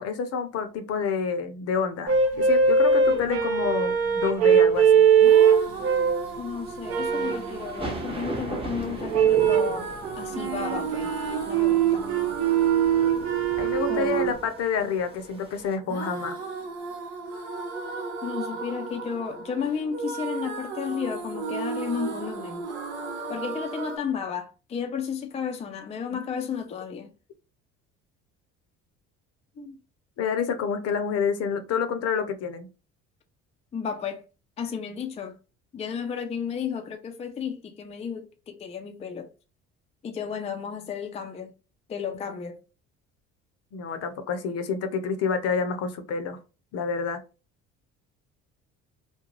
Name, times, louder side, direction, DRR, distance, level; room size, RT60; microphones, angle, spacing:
voice 1, 0.0-5.0 13.6-16.4 29.6-29.8 30.2-32.7 43.7-46.4 46.7-47.2, left 6 dB, 55° left, 0.6 m, -28 dB
sound 1, 2.1-6.3 6.9-7.5 9.1-9.8 10.3-14.3, right 7 dB, 55° right, 0.8 m, -21 dB
voice 2, 3.1-3.5 6.4-11.1 11.5-12.0 13.9-14.3 18.2-22.7 23.3-27.1 33.7-34.2 34.6-35.4 35.7-39.3 40.0-41.5 41.9-42.6, left 7 dB, 20° left, 0.4 m, -33 dB
sound 2, 4.8-15.7, right 2 dB, 20° right, 0.9 m, -40 dB
sound 3, 5.2-24.0, right 4 dB, 90° right, 0.8 m, -35 dB
2.4 x 2.1 x 3.0 m
supercardioid pair, 85°, 29 cm